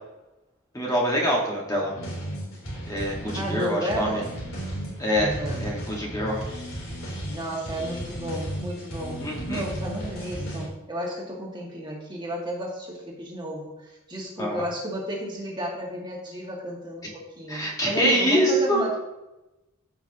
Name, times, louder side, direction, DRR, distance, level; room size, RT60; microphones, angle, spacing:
voice 1, 0.7-2.0 2.9-4.2 5.0-6.4 9.2-9.6 14.4-14.6 17.5-18.8, equal, 15° left, -3 dB, 1.6 m, -25 dB
sound 1, 1.9-10.7, right 1 dB, 70° left, 3.4 m, -34 dB
voice 2, 3.3-4.2 5.1-5.6 7.3-19.0, right 1 dB, 20° right, -2 dB, 1.9 m, -33 dB
15.0 x 5.8 x 2.9 m, 0.98 s
head